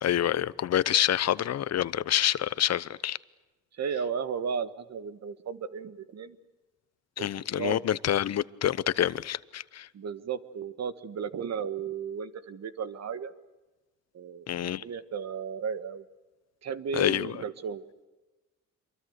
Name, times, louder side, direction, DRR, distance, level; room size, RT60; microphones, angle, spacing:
voice 1, 0.0-3.2 7.2-9.9 14.5-14.8 16.9-17.4, left 11 dB, 60° left, 0.9 m, -27 dB
voice 2, 3.8-6.4 7.2-7.3 7.6-7.8 9.9-13.3 14.1-16.0 16.6-17.8, right 6 dB, 60° right, 1.7 m, -34 dB
27.0 x 23.0 x 8.1 m
cardioid pair, 90°, 30 cm